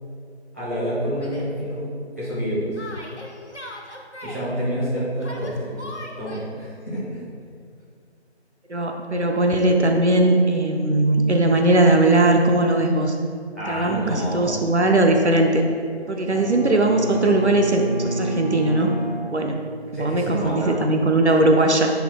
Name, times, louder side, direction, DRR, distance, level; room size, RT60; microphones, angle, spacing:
voice 1, 0.5-1.9 2.2-2.8 4.2-5.9 6.2-7.0 13.5-14.5 19.9-20.7, equal, 15° right, -13 dB, 1.5 m, -27 dB
Yell, 1.2-1.5 2.8-4.5 5.2-6.5, left 1 dB, 75° left, 1.3 m, -38 dB
voice 2, 8.7-13.2 13.7-15.6 16.1-18.9 19.3-19.6 19.9-21.9, right 2 dB, 75° right, 3 dB, 0.8 m, -19 dB
Bowed string instrument, 16.3-20.1, equal, 45° right, 0.7 m, -29 dB
10.0 x 5.9 x 2.2 m, 2.3 s
figure-of-eight pair, 165°, 34 cm